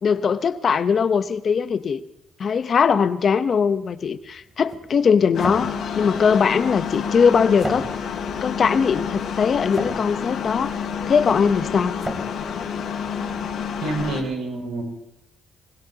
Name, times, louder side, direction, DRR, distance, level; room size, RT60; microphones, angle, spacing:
voice 1, 0.0-2.0 2.4-7.9 8.4-10.7 11.1-12.0, left 6 dB, 50° left, 0.9 m, -20 dB
sound 1, 3.7-13.6, right 1 dB, 10° right, 3.2 m, -37 dB
sound 2, 5.3-14.2, left 7 dB, 70° left, 3.4 m, -29 dB
voice 2, 13.8-14.8, right 2 dB, 85° right, 6.8 m, -27 dB
21.0 x 20.5 x 2.9 m
cardioid pair, 90°, 0 cm